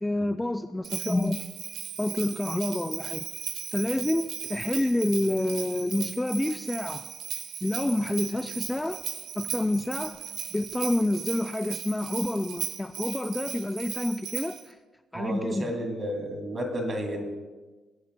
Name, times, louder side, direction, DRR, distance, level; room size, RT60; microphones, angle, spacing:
voice 1, 0.0-1.4 2.0-3.3 3.7-7.0 7.6-9.0 9.4-10.2 10.5-14.8 15.1-15.7, left 1 dB, 10° left, 9 dB, 0.3 m, -28 dB
Bell, 0.8-14.7, right 8 dB, 65° right, 1.0 m, -37 dB
voice 2, 15.1-17.3, equal, 35° right, 2 dB, 2.6 m, -31 dB
21.5 x 10.0 x 2.2 m, 1.3 s
cardioid pair, 95°, 0 cm